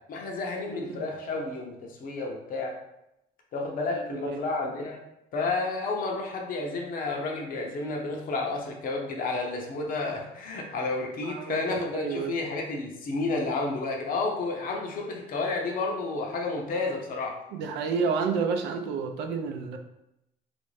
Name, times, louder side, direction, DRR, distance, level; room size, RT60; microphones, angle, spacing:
voice 1, 0.1-2.7 3.5-5.0 5.3-17.4, left 3 dB, 55° left, 1 dB, 0.7 m, -31 dB
voice 2, 0.6-1.0 3.9-4.4 11.2-12.4 17.5-19.8, right 5 dB, 80° right, 6 dB, 0.5 m, -30 dB
3.1 x 2.6 x 3.1 m, 0.85 s
cardioid pair, 110°, 17 cm